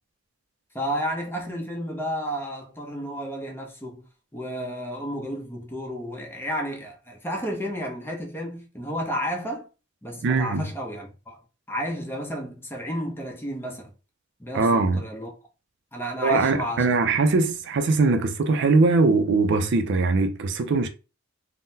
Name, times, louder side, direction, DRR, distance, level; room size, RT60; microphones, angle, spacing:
voice 1, 0.7-4.0 4.3-9.7 10.0-11.4 11.7-13.9 14.4-15.3 15.9-17.0, equal, 10° left, 0.7 m, -32 dB
voice 2, 10.2-10.7 14.5-15.0 16.2-20.9, right 3 dB, 60° right, 0.4 m, -21 dB
3.7 x 2.0 x 2.7 m
head